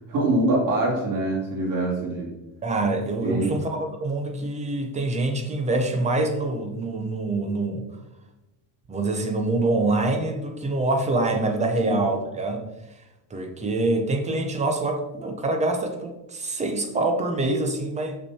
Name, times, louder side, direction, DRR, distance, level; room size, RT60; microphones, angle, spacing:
voice 1, 0.1-2.3 3.2-3.6 11.8-12.0, right 2 dB, 45° right, -2 dB, 2.7 m, -24 dB
voice 2, 2.6-7.9 8.9-12.7 13.3-18.2, right 2 dB, 15° right, 5 dB, 0.6 m, -25 dB
6.5 x 5.8 x 4.2 m, 0.98 s
cardioid pair, 170°, 45 cm